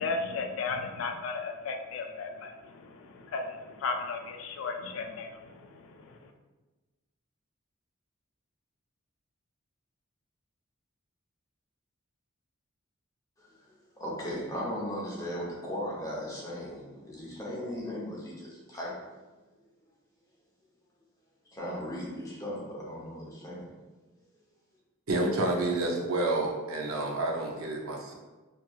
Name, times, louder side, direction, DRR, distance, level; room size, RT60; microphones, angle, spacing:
voice 1, 0.0-6.3, left 4 dB, 65° left, 5 dB, 0.3 m, -35 dB
voice 2, 13.4-19.1 21.5-23.7, equal, 15° left, -5 dB, 0.7 m, -37 dB
voice 3, 25.1-28.1, right 2 dB, 75° right, 0 dB, 0.5 m, -29 dB
3.0 x 2.6 x 2.3 m, 1.2 s
head